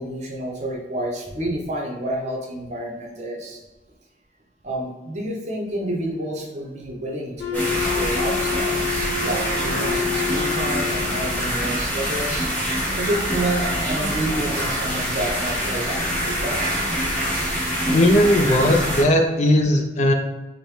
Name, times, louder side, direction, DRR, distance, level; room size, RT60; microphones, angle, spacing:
voice 1, 0.0-3.6 4.6-12.5 13.0-16.7, right 1 dB, 40° right, 0 dB, 0.7 m, -29 dB
Wind instrument woodwind instrument, 7.4-11.5, left 7 dB, 65° left, 0.8 m, -28 dB
sound 1, 7.5-19.0, equal, 10° left, 1.0 m, -25 dB
voice 2, 17.9-20.1, left 1 dB, 40° left, 3 dB, 0.4 m, -17 dB
5.1 x 2.1 x 3.1 m, 1.1 s
head